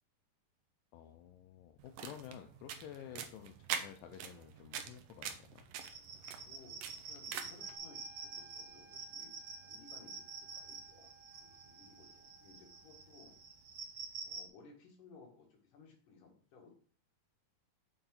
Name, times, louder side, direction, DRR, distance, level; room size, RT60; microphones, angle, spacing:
voice 1, 0.9-5.7, left 9 dB, 85° left, 6 dB, 2.3 m, -51 dB
sound 1, 1.8-7.7, right 8 dB, 75° right, 2.3 m, -44 dB
sound 2, 5.8-14.5, right 4 dB, 55° right, 1.4 m, -48 dB
voice 2, 6.3-13.4 14.2-16.7, left 4 dB, 65° left, -1 dB, 3.5 m, -60 dB
Wind instrument woodwind instrument, 7.6-13.7, right 4 dB, 45° left, 3.8 m, -63 dB
7.1 x 5.6 x 3.8 m, 0.43 s
omnidirectional pair, 4.0 m